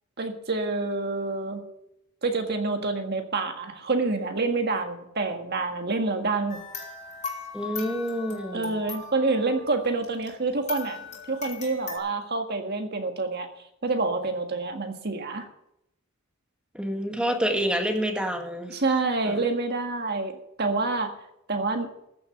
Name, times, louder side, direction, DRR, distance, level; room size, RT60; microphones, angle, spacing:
voice 1, 0.2-1.6 2.2-6.6 8.5-13.5 13.8-15.5 18.7-20.3 20.6-21.1 21.5-21.9, right 3 dB, 50° right, 5 dB, 1.7 m, -27 dB
sound 1, 6.5-10.4 10.7-12.0, left 5 dB, 35° left, 3.3 m, -39 dB
voice 2, 7.5-8.8 16.7-18.8 19.2-19.4, equal, 5° right, 3 dB, 1.7 m, -28 dB
14.5 x 6.9 x 7.9 m, 0.81 s
head